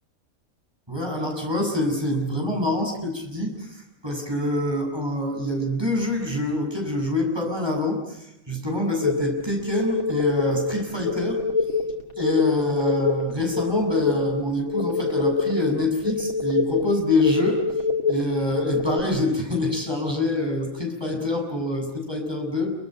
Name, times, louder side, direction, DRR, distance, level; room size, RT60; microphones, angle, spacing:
voice 1, 0.9-11.4 12.2-17.6 18.1-22.7, left 1 dB, 15° right, 1 dB, 7.6 m, -25 dB
sound 1, 9.0-19.0, left 4 dB, 85° left, 3.5 m, -25 dB
27.5 x 25.5 x 7.8 m, 0.85 s
omnidirectional pair, 1.4 m